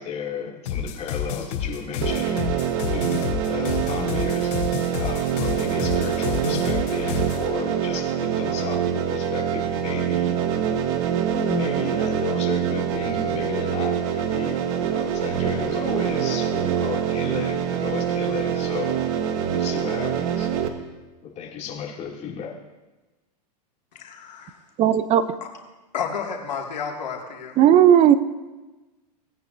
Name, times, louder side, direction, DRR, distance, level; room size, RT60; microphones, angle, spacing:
voice 1, 0.0-2.5 2.9-4.6 5.0-10.4 11.5-19.0 19.5-20.5 21.2-22.6, left 7 dB, 30° left, -1 dB, 2.5 m, -34 dB
sound 1, 0.7-7.4, left 8 dB, 65° left, 3.7 m, -29 dB
sound 2, 2.0-20.7, right 8 dB, 55° right, 1.3 m, -25 dB
voice 2, 23.9-24.6 25.4-25.5 25.9-27.6, left 6 dB, 85° left, 1 dB, 2.1 m, -31 dB
voice 3, 24.8-25.4 27.6-28.2, right 10 dB, 30° right, 13 dB, 0.6 m, -15 dB
18.5 x 9.3 x 2.6 m, 1.1 s
hypercardioid pair, 115°, 21 cm